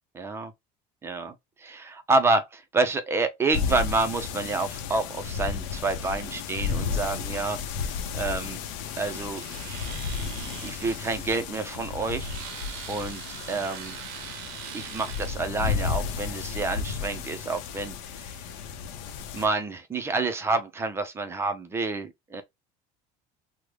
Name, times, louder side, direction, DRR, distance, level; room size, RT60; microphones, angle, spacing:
voice 1, 0.1-0.5 1.0-8.6 9.0-9.4 10.2-12.3 12.9-13.2 13.5-14.0 14.7-18.4 19.3-22.4, right 3 dB, 15° right, 0.4 m, -28 dB
sound 1, 3.5-19.5, left 6 dB, 85° left, 0.6 m, -33 dB
Domestic sounds home sounds, 9.1-15.5, right 11 dB, 85° right, 0.5 m, -42 dB
3.5 x 2.0 x 3.0 m
cardioid pair, 175°, 18 cm